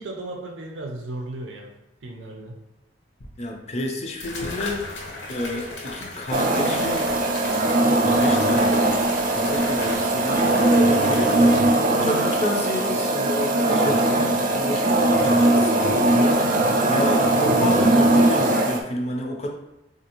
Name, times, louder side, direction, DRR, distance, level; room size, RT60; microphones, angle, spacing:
voice 1, 0.0-1.7 2.0-2.6 17.4-17.8, right 2 dB, 85° right, 1 dB, 0.6 m, -34 dB
sound 1, 3.2-3.3 4.2-11.6, left 2 dB, 80° left, 0.8 m, -36 dB
voice 2, 3.4-4.8 5.3-7.2 8.0-9.0 9.4-11.6 12.0-16.3 16.9-19.5, left 1 dB, 35° left, 2 dB, 0.5 m, -29 dB
sound 2, 6.3-18.8, right 2 dB, 45° right, 0.4 m, -20 dB
3.7 x 2.6 x 2.8 m, 0.95 s
head